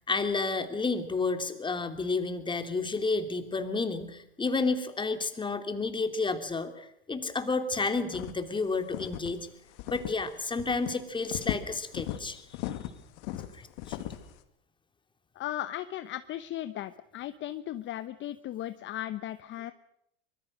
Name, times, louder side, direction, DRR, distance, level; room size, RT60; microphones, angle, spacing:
voice 1, 0.1-9.5 9.9-12.4 13.9-14.0, left 3 dB, 15° left, 8 dB, 2.9 m, -31 dB
sound 1, 8.1-8.5 8.9-9.3 9.8-10.3 10.5-10.9 11.3-12.2 12.5-14.3, left 14 dB, 65° left, 2.4 m, -36 dB
voice 2, 15.4-19.7, left 13 dB, 40° left, 12 dB, 1.0 m, -36 dB
24.5 x 22.0 x 6.4 m, 0.75 s
hypercardioid pair, 100°, 31 cm